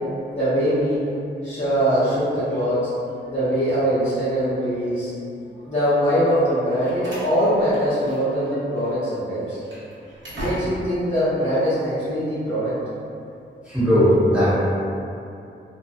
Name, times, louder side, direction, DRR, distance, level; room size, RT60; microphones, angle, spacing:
voice 1, 0.3-1.0 1.4-2.8 3.3-5.1 5.6-9.6 10.3-12.7, equal, 35° left, -18 dB, 1.0 m, -22 dB
Slam, 6.5-8.5 8.8-8.9 9.4-11.0, equal, 70° right, 0.8 m, -36 dB
voice 2, 13.7-14.6, equal, 5° right, -12 dB, 1.0 m, -17 dB
2.5 x 2.3 x 2.4 m, 2.6 s
wide cardioid pair, 115°, 19 cm